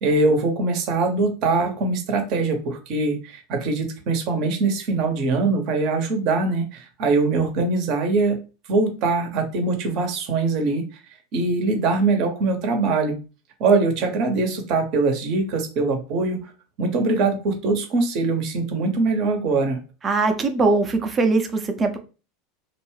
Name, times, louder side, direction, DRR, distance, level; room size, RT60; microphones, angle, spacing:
voice 1, 0.0-8.4 8.7-11.0 11.3-13.1 13.6-16.4 16.8-19.8, right 3 dB, 55° right, 5 dB, 0.9 m, -22 dB
voice 2, 20.0-22.0, right 3 dB, 25° right, 6 dB, 0.6 m, -21 dB
2.6 x 2.2 x 3.2 m, 0.33 s
hypercardioid pair, 90°, 0 cm